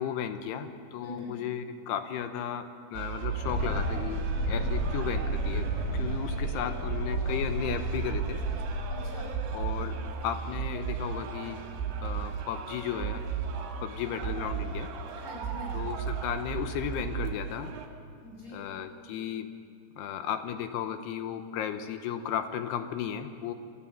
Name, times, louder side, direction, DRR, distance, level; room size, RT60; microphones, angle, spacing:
voice 1, 0.0-5.7 5.9-8.4 9.5-9.9 10.2-11.6 12.0-13.2 13.8-14.9 15.7-17.7 18.5-19.5 20.0-23.5, left 9 dB, 75° left, 8 dB, 2.7 m, -34 dB
voice 2, 1.0-1.4 8.9-9.4 15.2-15.9 18.2-18.7, left 2 dB, 20° left, -3 dB, 5.5 m, -44 dB
sound 1, 2.9-17.9, right 7 dB, 90° right, 4.1 m, -35 dB
sound 2, 3.4-10.3, right 1 dB, 60° left, 1.3 m, -32 dB
25.5 x 14.0 x 7.4 m, 2.3 s
omnidirectional pair, 5.1 m